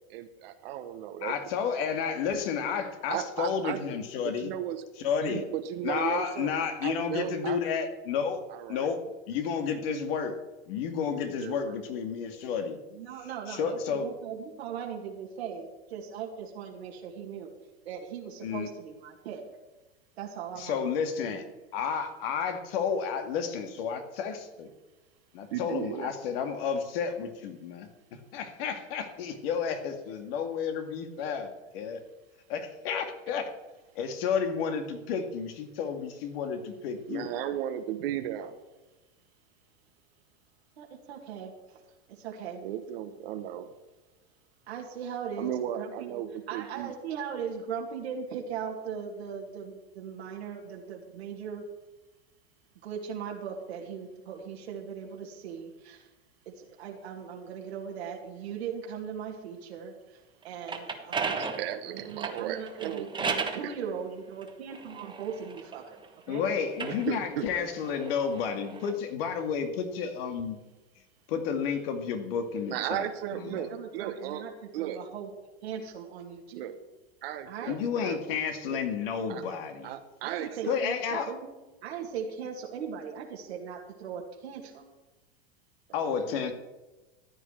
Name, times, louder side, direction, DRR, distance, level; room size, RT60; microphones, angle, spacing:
voice 1, 0.1-1.3 1.8-1.9 3.1-3.8 4.2-7.6 8.5-8.9 11.4-11.8 25.5-26.1 37.1-38.6 42.6-43.7 45.4-46.9 61.3-63.1 63.6-63.7 66.9-67.5 72.7-74.4 74.7-75.0 76.5-76.8 77.2-78.2 78.7-78.8 79.3-79.4 79.8-80.8 86.3-86.5, right 11 dB, 65° right, 8 dB, 1.1 m, -35 dB
voice 2, 1.2-4.5 5.0-5.4 5.8-8.4 8.7-10.4 10.7-12.8 13.5-14.1 18.4-18.7 20.6-21.4 21.7-24.7 25.3-32.0 32.5-33.5 34.0-37.3 66.3-70.6 71.3-73.1 73.3-73.7 77.7-80.0 80.7-81.3 85.9-86.5, left 6 dB, 65° left, 6 dB, 2.2 m, -31 dB
voice 3, 12.9-17.5 17.8-19.4 20.2-21.1 21.3-21.4 40.8-41.8 42.1-42.7 44.7-46.2 46.5-51.7 52.8-56.1 56.5-60.2 60.4-61.5 61.9-66.0 66.3-66.5 72.7-72.9 73.2-74.5 74.8-75.3 75.6-76.7 77.5-77.8 80.2-81.5 81.8-84.8, right 7 dB, 80° right, 0 dB, 2.1 m, -39 dB
sound 1, 60.4-63.7 64.4-66.1 66.6-68.9, right 5 dB, 15° right, 1.3 m, -35 dB
14.0 x 9.0 x 4.5 m, 1.1 s
hypercardioid pair, 120°, 31 cm